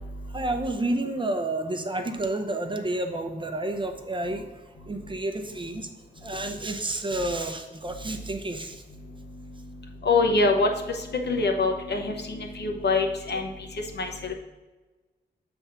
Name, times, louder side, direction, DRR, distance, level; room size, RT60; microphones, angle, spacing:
voice 1, 0.3-4.4 4.9-5.9 6.2-8.7, right 2 dB, 25° right, 5 dB, 0.6 m, -30 dB
voice 2, 10.0-11.0 11.3-13.5 14.0-14.3, left 3 dB, 65° left, 3 dB, 0.9 m, -24 dB
7.2 x 3.5 x 5.6 m, 1.2 s
wide cardioid pair, 125°, 18 cm